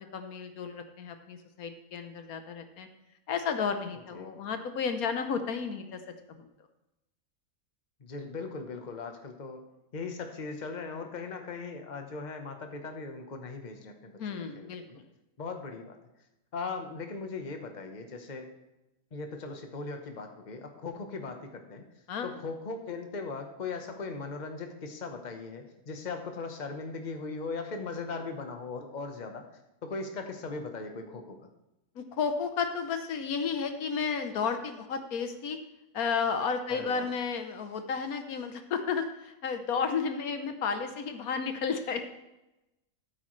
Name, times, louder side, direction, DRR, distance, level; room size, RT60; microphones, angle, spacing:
voice 1, 0.0-2.9 3.3-6.0 6.4-6.5 14.2-15.0 22.1-22.3 32.0-35.6 35.9-42.1, left 6 dB, 85° left, 7 dB, 1.4 m, -32 dB
voice 2, 8.0-9.6 9.9-15.0 15.4-16.0 16.5-18.5 19.1-21.8 22.2-29.5 29.8-31.4 36.7-37.1, left 4 dB, 35° left, 5 dB, 1.2 m, -39 dB
13.5 x 8.5 x 3.2 m, 0.95 s
omnidirectional pair, 1.5 m